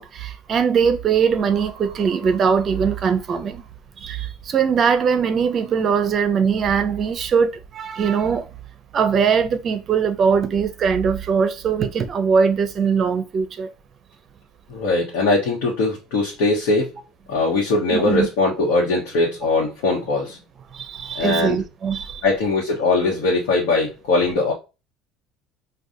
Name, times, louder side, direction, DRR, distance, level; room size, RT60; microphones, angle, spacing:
voice 1, 0.0-3.6 4.0-8.5 8.9-13.7 17.9-18.3 20.7-22.2, right 6 dB, 35° right, 0.5 m, -21 dB
voice 2, 14.7-17.0 17.3-20.4 21.1-21.6 22.2-24.5, left 3 dB, 80° left, 1.0 m, -21 dB
4.9 x 2.3 x 2.6 m
cardioid pair, 130°, 0 cm